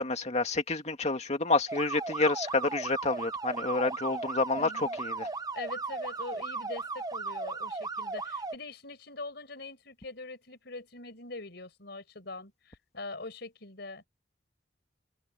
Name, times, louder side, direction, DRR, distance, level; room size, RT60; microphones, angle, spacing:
voice 1, 0.0-4.7 5.0-5.3, left 3 dB, 35° left, 2.3 m, -29 dB
sound 1, 1.7-8.5, right 3 dB, 20° right, 0.9 m, -36 dB
voice 2, 4.5-5.0 5.5-14.0, left 2 dB, 60° left, 5.3 m, -43 dB
open air
head